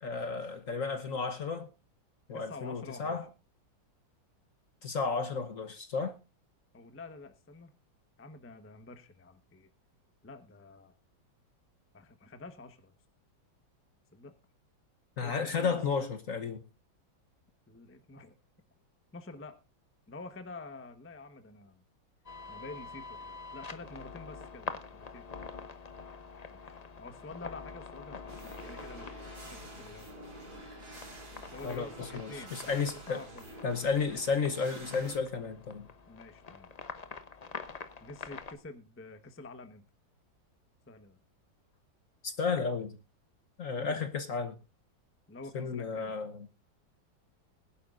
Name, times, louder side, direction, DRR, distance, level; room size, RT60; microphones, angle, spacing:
voice 1, 0.0-1.7 2.3-3.2 4.8-6.2 15.2-16.6 31.6-33.2 33.6-35.9 42.2-43.0 43.6-44.6 45.5-46.5, left 5 dB, 50° left, 1.1 m, -33 dB
voice 2, 2.3-3.3 6.7-7.7 8.2-9.7 10.2-10.9 11.9-12.9 14.1-14.3 15.2-15.8 17.7-18.4 19.1-19.6 20.1-21.8 22.5-25.3 26.5-30.3 31.5-33.4 36.1-36.7 38.0-39.8 40.9-41.2 43.8-44.1 45.3-46.1, left 3 dB, 10° left, 0.7 m, -48 dB
sound 1, 22.3-38.6, left 4 dB, 75° left, 0.3 m, -46 dB
sound 2, 28.3-35.2, right 2 dB, 55° right, 3.6 m, -49 dB
21.0 x 11.0 x 2.5 m
omnidirectional pair, 2.1 m